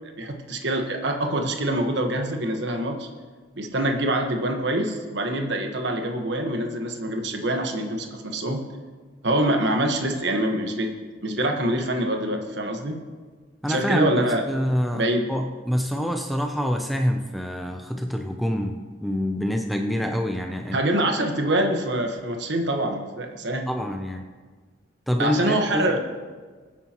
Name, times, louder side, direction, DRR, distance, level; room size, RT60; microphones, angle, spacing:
voice 1, 0.2-3.1 3.5-8.6 9.2-10.9 11.2-13.0 13.7-14.4 14.9-15.3 20.7-23.7 25.2-26.0, right 1 dB, 55° right, 4 dB, 1.3 m, -25 dB
voice 2, 13.6-15.0 15.3-20.8 23.7-24.3 25.1-25.9, equal, ahead, 3 dB, 0.5 m, -26 dB
21.5 x 9.3 x 3.0 m, 1.5 s
head